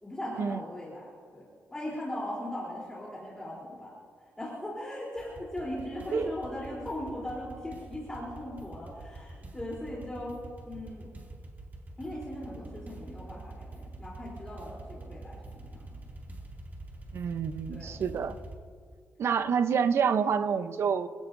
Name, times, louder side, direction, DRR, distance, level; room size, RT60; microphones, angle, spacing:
voice 1, 0.0-10.4 10.7-11.1 12.0-15.9 17.7-18.1, left 1 dB, 15° left, 3.6 m, -39 dB
sound 1, 5.2-18.6, right 2 dB, 35° right, 2.5 m, -45 dB
voice 2, 17.1-18.4 19.2-21.1, right 6 dB, 60° right, 0.8 m, -27 dB
27.0 x 17.0 x 2.7 m
wide cardioid pair, 150°, 5 cm